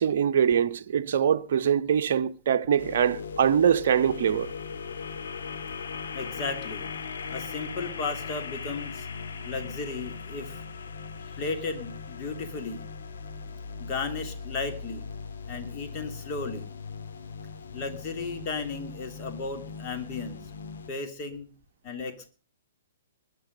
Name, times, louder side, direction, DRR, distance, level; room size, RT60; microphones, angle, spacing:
voice 1, 0.0-4.5, right 8 dB, 55° right, 0.8 m, -23 dB
sound 1, 2.8-20.9, left 5 dB, 60° left, 1.8 m, -39 dB
voice 2, 6.1-6.9 7.3-9.1 9.4-10.6 11.2-12.8 13.8-15.1 15.5-16.7 17.7-20.5 20.9-21.5 21.8-22.3, left 4 dB, 30° left, 2.9 m, -35 dB
21.5 x 9.9 x 5.2 m
figure-of-eight pair, 120°, 0 cm